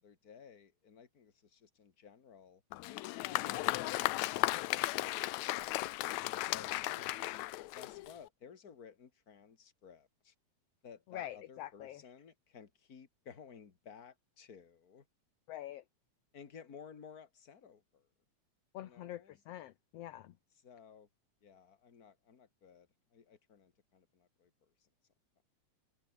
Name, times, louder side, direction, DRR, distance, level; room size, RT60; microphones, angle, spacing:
voice 1, 0.0-2.6 3.3-7.3 7.7-10.3 10.8-15.1 16.3-18.1 18.8-19.4 20.5-21.1 21.4-24.9, left 7 dB, 35° left, 2.4 m, -56 dB
Applause, 2.7-8.3, left 17 dB, 85° left, 2.0 m, -35 dB
voice 2, 11.1-12.0 15.5-15.8 18.7-20.3, left 13 dB, 65° left, 1.8 m, -45 dB
omnidirectional pair, 3.3 m